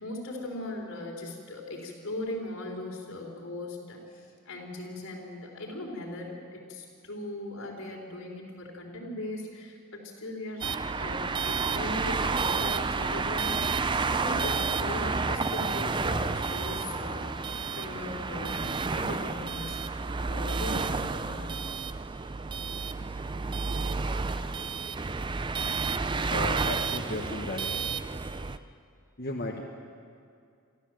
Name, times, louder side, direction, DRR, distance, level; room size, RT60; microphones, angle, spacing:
voice 1, 0.0-19.8 20.3-21.5, left 1 dB, 65° left, -1 dB, 4.1 m, -39 dB
sound 1, 10.6-28.6, right 4 dB, 20° right, 0.4 m, -30 dB
voice 2, 26.3-27.7 29.2-29.6, left 1 dB, 45° left, -1 dB, 1.4 m, -34 dB
25.0 x 14.0 x 7.7 m, 2.3 s
head